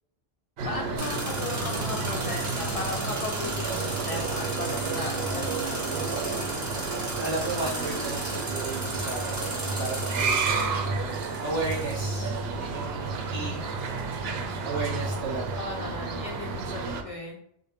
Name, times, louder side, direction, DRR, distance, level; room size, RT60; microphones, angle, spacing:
sound 1, 0.6-17.0, right 4 dB, 75° right, 0.8 m, -31 dB
voice 1, 0.7-5.8 10.5-10.9 15.6-17.4, left 2 dB, 55° left, 1 dB, 0.4 m, -36 dB
sound 2, 1.0-12.4, right 1 dB, 20° right, 0.8 m, -36 dB
voice 2, 7.2-11.0 11.4-13.7 14.6-15.6 16.5-16.9, right 3 dB, 45° right, -8 dB, 1.8 m, -34 dB
4.2 x 2.0 x 3.3 m, 0.75 s
omnidirectional pair, 1.1 m